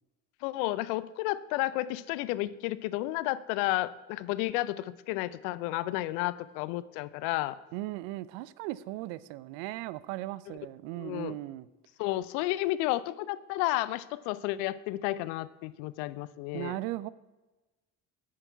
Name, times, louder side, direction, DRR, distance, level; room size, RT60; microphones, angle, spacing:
voice 1, 0.4-7.6 11.0-11.4 12.0-16.8, left 16 dB, 70° left, 17 dB, 0.6 m, -32 dB
voice 2, 7.7-11.7 16.5-17.1, right 17 dB, 70° right, 18 dB, 0.5 m, -37 dB
8.9 x 6.5 x 4.6 m, 1.1 s
hypercardioid pair, 55°, 45 cm